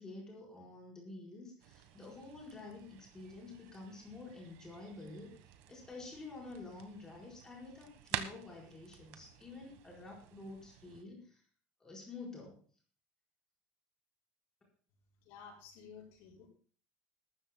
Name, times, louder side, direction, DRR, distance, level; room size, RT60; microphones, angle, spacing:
voice 1, 0.0-5.3 5.7-11.4 11.8-12.6, left 3 dB, 10° left, -2 dB, 4.5 m, -49 dB
sound 1, 1.6-11.0, right 12 dB, 65° right, 1.3 m, -49 dB
voice 2, 15.2-16.5, left 6 dB, 60° left, -5 dB, 6.0 m, -53 dB
21.0 x 13.5 x 2.2 m, 0.42 s
cardioid pair, 180°, 5 cm